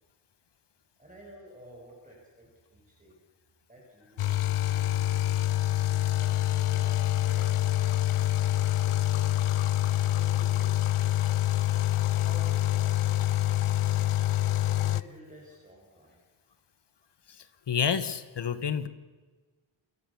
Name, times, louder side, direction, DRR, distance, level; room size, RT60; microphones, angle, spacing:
voice 1, 1.0-3.2 3.7-5.2 6.0-9.3 10.0-11.3 12.0-13.4 13.6-14.2 14.7-16.2, right 1 dB, 15° right, -3 dB, 5.9 m, -52 dB
sound 1, 4.2-15.0, left 14 dB, 80° left, 0.8 m, -26 dB
voice 2, 17.7-18.9, left 7 dB, 55° left, 12 dB, 1.5 m, -28 dB
28.0 x 14.0 x 7.2 m, 1.3 s
wide cardioid pair, 115°, 50 cm